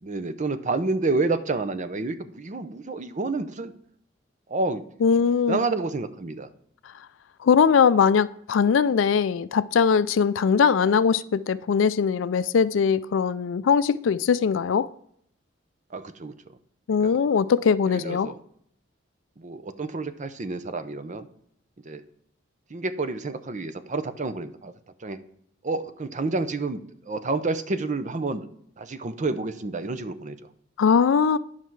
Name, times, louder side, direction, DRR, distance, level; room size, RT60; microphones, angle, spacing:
voice 1, 0.0-3.7 4.5-4.9 5.5-6.5 15.9-16.3 17.0-17.2 17.9-18.4 19.4-21.3 21.9-22.0 22.7-24.7 25.0-25.2 25.6-28.5 28.8-30.5, right 3 dB, 40° right, 0.6 m, -29 dB
voice 2, 5.0-5.6 7.4-14.9 16.9-18.3 30.8-31.4, left 6 dB, 75° left, 0.4 m, -21 dB
9.9 x 5.7 x 4.6 m
head